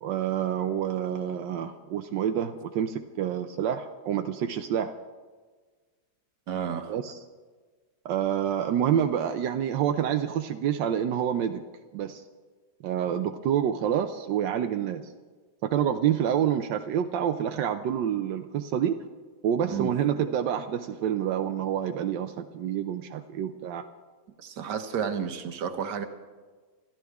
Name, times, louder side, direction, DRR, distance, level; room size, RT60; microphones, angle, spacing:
voice 1, 0.0-4.9 6.9-7.2 8.0-11.6 11.9-12.2 12.8-15.1 15.6-19.0 19.4-23.9, right 9 dB, 90° right, 6 dB, 1.4 m, -27 dB
voice 2, 6.5-6.9 19.7-19.9 24.4-26.1, right 7 dB, 75° right, 7 dB, 1.7 m, -31 dB
27.5 x 13.5 x 3.5 m, 1.4 s
omnidirectional pair, 1.9 m